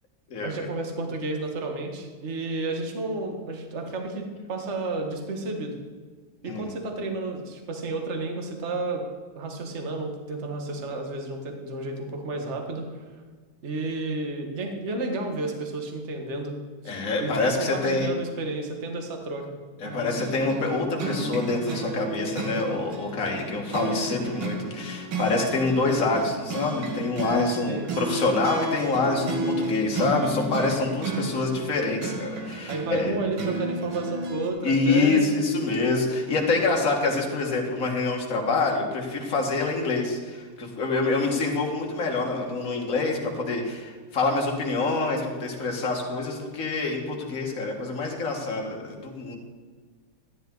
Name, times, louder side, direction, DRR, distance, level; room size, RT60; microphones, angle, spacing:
voice 1, 0.4-5.7 6.4-9.0 9.3-12.9 13.6-16.6 16.8-19.5 27.7-27.9 32.7-35.3, right 2 dB, 35° right, 3 dB, 1.5 m, -31 dB
voice 2, 6.4-6.8 16.9-18.1 19.8-33.1 34.6-49.4, left 3 dB, 40° left, 0 dB, 2.0 m, -26 dB
sound 1, 19.8-34.5, right 2 dB, 70° right, 2.4 m, -32 dB
13.5 x 10.5 x 3.9 m, 1.5 s
omnidirectional pair, 2.3 m